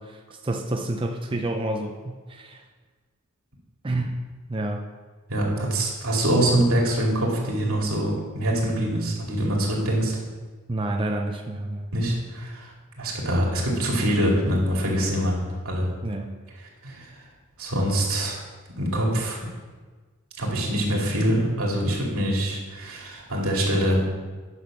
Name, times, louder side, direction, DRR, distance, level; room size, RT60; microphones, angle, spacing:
voice 1, 0.0-2.6 3.8-4.2 4.5-4.8 10.7-11.9 16.0-16.4, right 1 dB, 25° right, 2 dB, 0.6 m, -29 dB
voice 2, 5.3-10.2 11.9-12.7 13.0-15.9 16.8-17.1 17.6-18.4 18.8-19.5 20.4-24.0, right 1 dB, 85° right, -2 dB, 2.5 m, -24 dB
9.7 x 6.0 x 6.0 m, 1.4 s
head